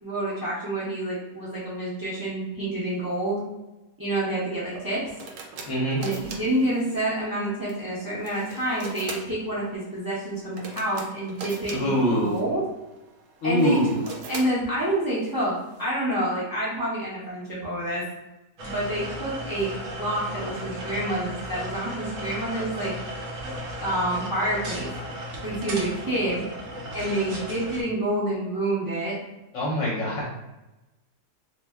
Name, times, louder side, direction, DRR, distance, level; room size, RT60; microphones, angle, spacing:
voice 1, 0.0-3.4 4.0-5.1 6.0-11.9 12.2-12.7 13.4-13.8 14.3-15.5 15.8-18.0 18.6-19.7 20.0-22.9 23.4-24.9 25.4-26.4 26.9-29.2, right 1 dB, 35° right, -8 dB, 0.3 m, -28 dB
sound 1, 4.7-15.9, right 3 dB, 80° right, 1.1 m, -42 dB
voice 2, 5.7-6.0 11.7-12.3 13.4-14.0 29.5-30.3, equal, 60° left, -4 dB, 0.9 m, -24 dB
sound 2, 18.6-27.8, equal, 65° right, 0.8 m, -35 dB
2.6 x 2.1 x 3.3 m, 1.0 s
omnidirectional pair, 1.7 m